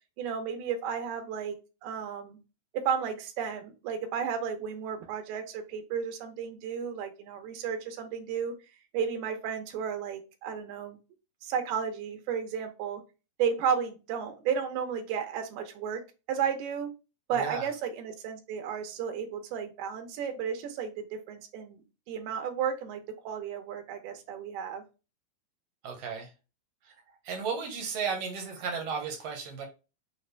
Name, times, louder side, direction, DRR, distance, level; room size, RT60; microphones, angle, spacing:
voice 1, 0.2-1.6 1.8-2.4 2.7-8.5 8.9-11.0 11.4-13.0 13.4-16.0 16.3-16.9 17.3-21.8 22.1-24.8, right 7 dB, 90° right, 2.8 m, -33 dB
voice 2, 17.3-17.7 25.8-26.3 26.8-26.9 27.2-29.7, right 5 dB, 70° right, 1.5 m, -34 dB
6.3 x 2.5 x 3.3 m
omnidirectional pair, 4.4 m